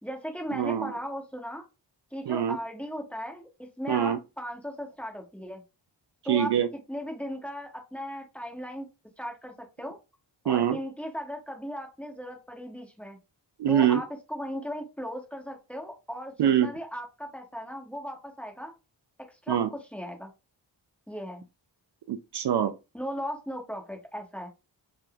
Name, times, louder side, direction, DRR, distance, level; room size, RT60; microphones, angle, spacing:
voice 1, 0.0-1.6 2.1-5.6 6.2-8.9 9.2-10.0 10.4-13.2 13.7-18.7 19.3-20.3 21.1-21.4 22.9-24.5, equal, 5° left, 1.2 m, -37 dB
voice 2, 0.6-0.9 2.3-2.6 3.9-4.2 6.3-6.7 10.5-10.8 13.6-14.0 16.4-16.7 19.5-19.7 22.1-22.7, right 9 dB, 65° right, 0.5 m, -24 dB
3.8 x 2.5 x 2.3 m
cardioid pair, 55°, 45 cm